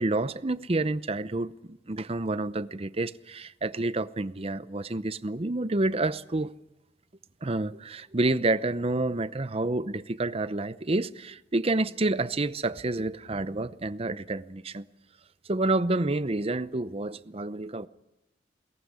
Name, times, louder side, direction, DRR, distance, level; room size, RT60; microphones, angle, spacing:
voice 1, 0.0-6.5 7.4-14.8 15.5-17.9, right 2 dB, 35° right, 0.7 m, -29 dB
22.5 x 18.5 x 9.7 m
head